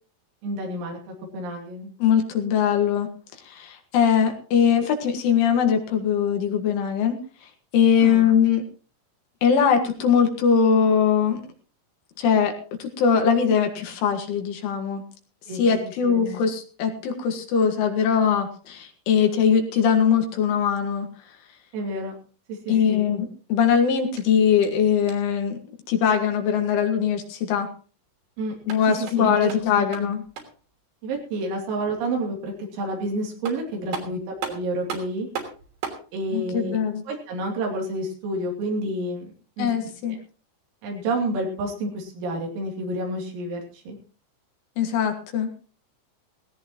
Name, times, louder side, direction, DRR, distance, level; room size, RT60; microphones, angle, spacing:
voice 1, 0.4-1.9 8.0-8.3 15.5-15.8 16.0-16.4 21.7-22.2 22.5-23.0 28.4-28.6 29.0-29.5 29.8-29.9 31.0-35.3 36.1-36.8 37.1-39.3 39.6-40.2 40.8-44.0, right 1 dB, 90° right, 0 dB, 5.7 m, -29 dB
voice 2, 2.0-3.1 3.4-7.2 7.4-8.6 9.4-11.4 12.2-15.0 15.5-21.1 22.7-25.6 25.9-27.7 28.7-30.2 36.3-37.0 39.6-40.2 44.8-45.5, left 7 dB, 70° left, 4 dB, 4.1 m, -21 dB
sound 1, 24.0-25.4 28.5-30.7 33.0-33.1 33.4-36.1, right 7 dB, 60° right, 5.0 m, -37 dB
18.0 x 17.0 x 3.0 m, 0.39 s
omnidirectional pair, 5.9 m